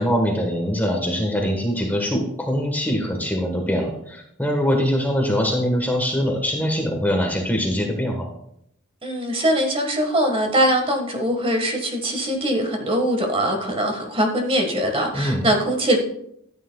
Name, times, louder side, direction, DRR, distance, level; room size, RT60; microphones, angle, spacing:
voice 1, 0.0-8.3 15.1-15.4, equal, 10° left, 2 dB, 1.3 m, -23 dB
voice 2, 9.0-16.0, equal, 25° right, 3 dB, 1.5 m, -22 dB
13.0 x 9.3 x 2.3 m, 0.73 s
head